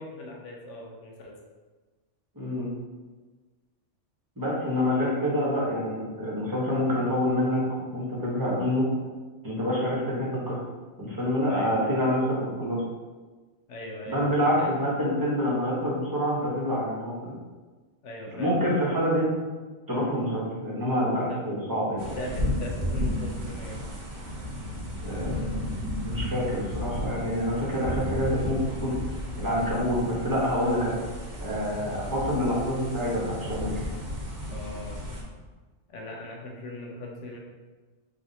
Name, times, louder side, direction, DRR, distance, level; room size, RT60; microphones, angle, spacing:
voice 1, 0.0-1.3 11.5-11.9 13.7-14.7 18.0-18.7 21.3-21.4 22.0-23.8 34.5-35.0 35.9-37.4, left 1 dB, 75° left, 0 dB, 1.1 m, -39 dB
voice 2, 2.3-2.7 4.4-8.9 9.4-10.6 11.0-12.8 14.1-17.3 18.3-19.3 19.9-22.0 25.0-25.6 26.0-29.0 29.4-31.0 31.4-33.7, equal, 20° right, -6 dB, 1.1 m, -27 dB
sound 1, 22.0-35.2, left 1 dB, 40° right, 0.9 m, -33 dB
3.8 x 3.1 x 4.0 m, 1.3 s
omnidirectional pair, 1.3 m